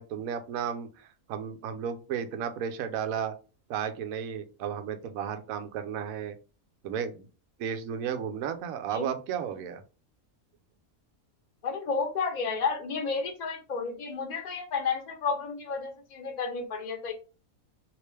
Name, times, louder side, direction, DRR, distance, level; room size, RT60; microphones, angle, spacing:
voice 1, 0.0-3.3 3.7-6.3 6.8-7.2 7.6-9.8, right 8 dB, 75° right, 8 dB, 1.0 m, -33 dB
voice 2, 11.6-17.1, left 5 dB, 35° left, 2 dB, 0.9 m, -31 dB
3.1 x 2.9 x 3.2 m, 0.34 s
omnidirectional pair, 1.5 m